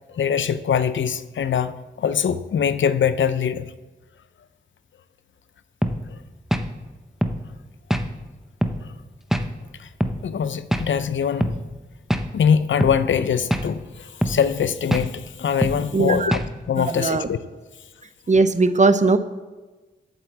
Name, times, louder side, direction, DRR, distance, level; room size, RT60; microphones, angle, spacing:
voice 1, 0.1-3.7 9.8-9.9 10.2-11.6 12.3-16.4 16.7-17.4, left 7 dB, 85° left, 13 dB, 0.5 m, -23 dB
sound 1, 5.8-6.0 6.5-6.7 7.2-7.4 7.9-8.1 8.6-8.8 9.3-9.5 10.0-10.2 10.7-10.9 11.4-11.6 12.1-12.3 12.8-13.0 13.5-13.7 14.2-14.4 14.9-15.1 15.6-15.8 16.3-16.5, equal, ahead, 0.7 m, -22 dB
voice 2, 15.9-16.3 16.8-17.3 18.3-19.2, right 3 dB, 40° right, 12 dB, 0.7 m, -19 dB
8.6 x 8.1 x 7.2 m, 1.2 s
wide cardioid pair, 85°, 19 cm